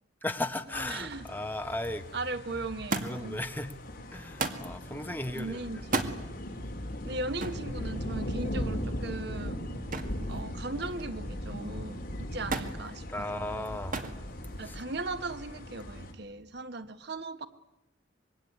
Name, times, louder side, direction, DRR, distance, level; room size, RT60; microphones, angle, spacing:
voice 1, 0.2-2.1 3.0-3.7 4.1-5.8 13.1-14.1 14.6-14.8, left 1 dB, 10° left, 7 dB, 1.4 m, -36 dB
sound 1, 0.7-16.1, equal, 50° left, 4.0 m, -39 dB
voice 2, 0.9-1.3 2.1-3.4 5.4-6.2 7.0-9.6 10.3-13.8 14.6-17.5, right 2 dB, 60° right, 11 dB, 1.3 m, -38 dB
Thump thud, 2.9-3.4 4.4-4.7 5.8-6.2 7.4-7.7 9.9-10.2 10.6-11.1 12.5-12.8 13.9-14.2 15.1-15.6 16.6-16.7, right 3 dB, 45° right, 2.1 m, -33 dB
25.5 x 22.5 x 9.6 m, 0.93 s
head